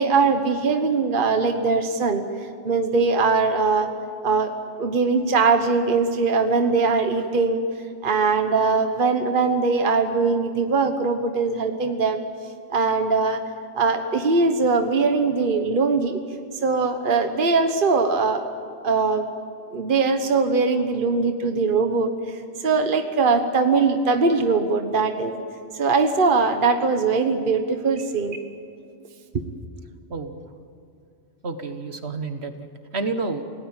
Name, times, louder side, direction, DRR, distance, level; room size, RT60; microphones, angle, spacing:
voice 1, 0.0-2.2 2.6-3.9 4.2-4.5 4.8-7.6 8.0-12.2 12.7-13.4 13.7-16.2 16.6-18.4 18.8-19.3 19.7-22.1 22.6-25.4 25.7-28.4 29.3-29.4, right 4 dB, 50° right, 6 dB, 1.4 m, -21 dB
voice 2, 30.1-30.5 31.4-33.4, right 3 dB, 65° right, 7 dB, 1.8 m, -30 dB
28.5 x 18.0 x 9.0 m, 2.4 s
omnidirectional pair, 1.2 m